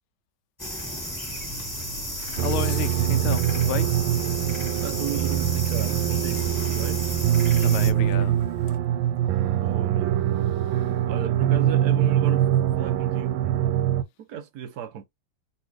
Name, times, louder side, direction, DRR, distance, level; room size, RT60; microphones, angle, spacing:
sound 1, 0.6-7.9, left 1 dB, 10° left, 1.3 m, -33 dB
Zipper (clothing), 1.3-8.8, equal, 65° left, 1.4 m, -44 dB
voice 1, 2.4-3.9 7.6-8.3, left 11 dB, 85° left, 1.4 m, -31 dB
sound 2, 2.4-14.0, right 11 dB, 85° right, 1.4 m, -23 dB
voice 2, 4.8-7.0 9.6-10.5 11.1-12.5 12.7-13.5 14.2-15.0, right 9 dB, 70° right, 0.9 m, -35 dB
3.2 x 2.8 x 4.6 m
omnidirectional pair, 2.2 m